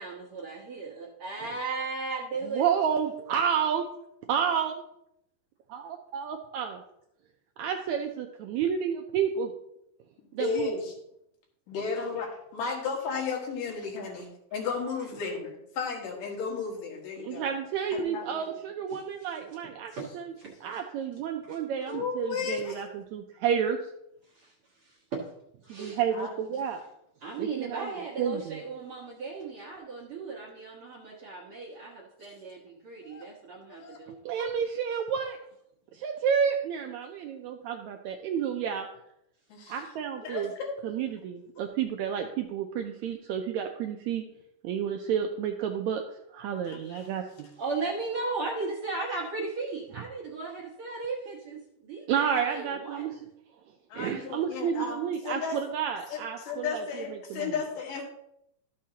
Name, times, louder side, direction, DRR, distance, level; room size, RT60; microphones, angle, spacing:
voice 1, 0.0-2.7 14.1-14.2 18.9-19.0 19.9-20.1 20.4-20.8 21.5-21.6 21.9-22.0 24.3-25.2 25.6-26.0 27.2-34.2 47.6-53.1, right 3 dB, 55° right, -3 dB, 1.7 m, -36 dB
voice 2, 2.5-3.8 4.3-4.8 5.7-5.8 6.1-6.8 7.6-8.3 8.6-9.5 10.3-10.8 17.2-20.3 20.6-23.8 25.7-26.8 27.4-27.9 28.2-28.6 34.3-35.4 35.9-38.9 39.7-40.5 40.8-44.2 44.6-47.5 52.1-53.2 53.9-56.8 57.1-57.6, right 7 dB, 80° right, 4 dB, 1.7 m, -30 dB
voice 3, 10.3-10.9 11.7-17.4 17.9-18.6 21.9-22.8 26.1-26.3 33.0-33.3 33.7-34.0 39.5-39.8 40.2-40.7 46.7-47.0 53.9-55.6 56.1-58.0, left 5 dB, 80° left, -1 dB, 3.3 m, -34 dB
12.5 x 6.5 x 2.8 m, 0.79 s
omnidirectional pair, 3.8 m